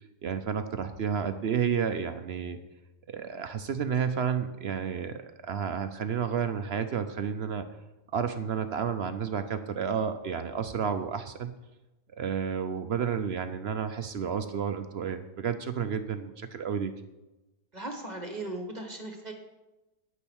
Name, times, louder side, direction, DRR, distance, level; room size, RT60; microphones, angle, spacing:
voice 1, 0.2-2.6 3.1-7.7 8.1-11.5 12.2-16.9, right 7 dB, 60° right, 9 dB, 0.7 m, -31 dB
voice 2, 17.7-19.3, right 2 dB, 30° right, 4 dB, 1.4 m, -37 dB
9.4 x 8.8 x 6.2 m, 1.0 s
omnidirectional pair, 1.5 m